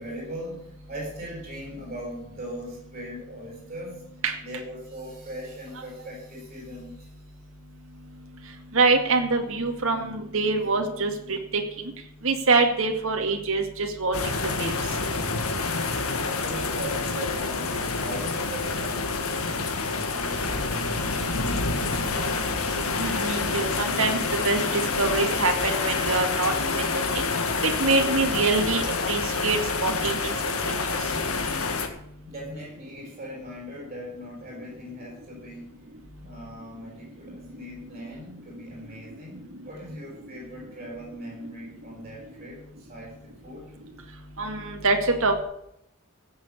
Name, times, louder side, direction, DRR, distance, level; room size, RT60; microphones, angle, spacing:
voice 1, 0.0-4.0 4.4-7.1 16.2-22.4 32.2-35.8 36.2-43.1 43.4-43.7, equal, 30° right, -3 dB, 7.1 m, -40 dB
voice 2, 8.7-11.6 12.2-14.1 14.6-14.7 23.0-27.3 27.6-29.6 29.8-30.7 44.4-45.4, right 3 dB, 65° right, 3 dB, 2.2 m, -25 dB
sound 1, 14.1-31.9, left 3 dB, 75° left, 1.8 m, -27 dB
16.0 x 7.6 x 7.2 m, 0.77 s
head